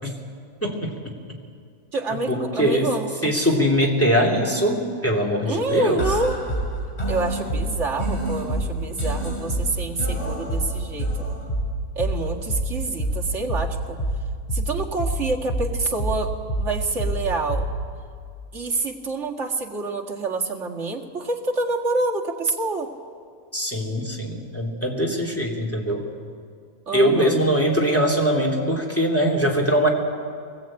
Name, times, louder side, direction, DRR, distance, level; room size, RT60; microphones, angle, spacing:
voice 1, 0.6-1.4 2.3-2.9 3.2-6.0 23.5-26.0 26.9-29.9, equal, 10° left, -1 dB, 3.1 m, -22 dB
voice 2, 1.9-3.3 5.4-6.4 7.1-11.1 12.0-14.0 14.5-16.3 16.6-17.7 18.5-22.9 26.9-27.4, right 3 dB, 50° right, 0 dB, 2.2 m, -27 dB
sound 1, 6.0-18.0, right 1 dB, 25° left, 6.6 m, -27 dB
23.0 x 20.0 x 8.9 m, 2.2 s
omnidirectional pair, 1.6 m